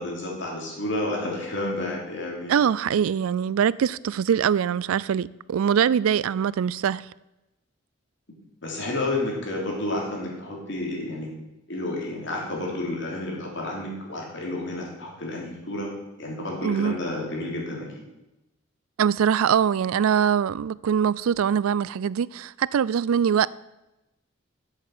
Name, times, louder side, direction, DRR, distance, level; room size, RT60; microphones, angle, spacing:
voice 1, 0.0-2.6 8.6-11.3 11.7-15.9 16.2-17.9, left 2 dB, 60° left, 3.3 m, -30 dB
voice 2, 2.5-7.1 16.6-17.0 19.0-23.5, right 8 dB, 85° right, 0.3 m, -23 dB
8.3 x 7.6 x 7.9 m
head